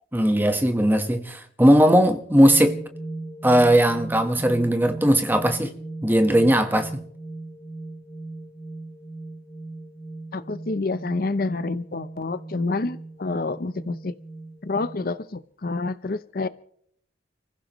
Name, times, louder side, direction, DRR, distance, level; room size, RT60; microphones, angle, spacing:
voice 1, 0.1-2.8 3.4-5.7 6.0-6.9, equal, 10° right, 1.3 m, -18 dB
sound 1, 2.3-15.1, right 2 dB, 5° left, 7.6 m, -38 dB
voice 2, 10.3-14.1 14.6-16.5, left 3 dB, 50° left, 0.6 m, -28 dB
30.0 x 15.5 x 3.1 m
head